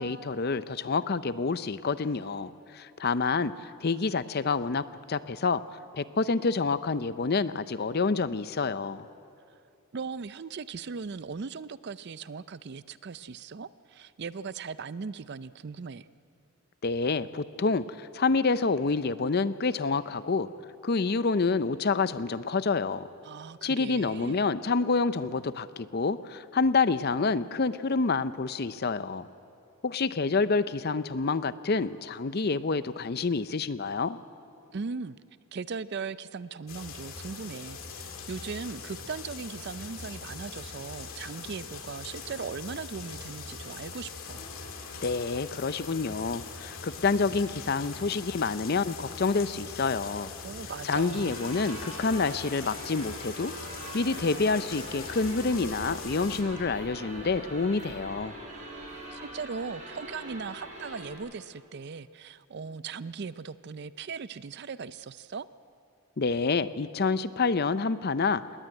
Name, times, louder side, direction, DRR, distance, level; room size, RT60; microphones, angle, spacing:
voice 1, 0.0-5.6 5.9-9.1 16.8-20.5 20.8-23.1 23.6-29.3 29.8-34.2 45.0-50.3 50.8-53.5 53.9-58.4 66.2-68.4, left 4 dB, 45° left, 14 dB, 0.6 m, -28 dB
voice 2, 9.9-16.1 23.2-24.4 34.7-35.2 35.5-44.4 50.4-51.4 59.1-65.5, right 5 dB, 50° right, 16 dB, 0.4 m, -38 dB
sound 1, 36.7-56.4, left 5 dB, 65° left, 2.3 m, -42 dB
sound 2, 51.1-61.2, right 1 dB, 35° right, 6.3 m, -43 dB
20.5 x 19.0 x 9.0 m, 2.5 s
head